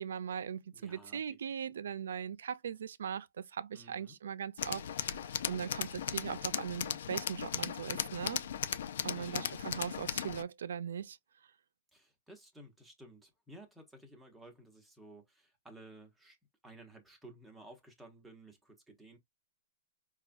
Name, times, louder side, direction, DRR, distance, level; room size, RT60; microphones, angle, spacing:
voice 1, 0.0-5.2 5.5-8.5 9.0-11.2, right 8 dB, 85° right, 0.4 m, -39 dB
voice 2, 0.7-1.4 3.7-4.2 9.1-9.6 11.9-16.4 16.6-19.2, right 1 dB, 5° right, 0.9 m, -55 dB
Tools, 4.6-10.4, left 9 dB, 65° left, 0.4 m, -37 dB
4.8 x 2.3 x 2.5 m
hypercardioid pair, 165°, 0 cm